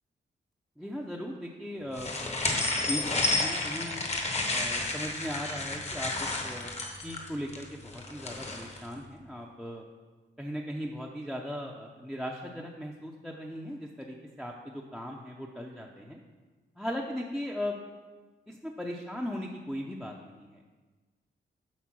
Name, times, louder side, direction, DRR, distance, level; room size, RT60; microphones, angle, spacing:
voice 1, 0.8-2.1 2.7-4.0 4.5-6.7 7.0-9.9 10.4-16.2 16.8-17.8 18.5-20.6, equal, ahead, -1 dB, 0.6 m, -38 dB
sound 1, 2.0-8.8, left 2 dB, 35° left, 1.1 m, -31 dB
8.2 x 5.1 x 6.2 m, 1.3 s
wide cardioid pair, 145°, 19 cm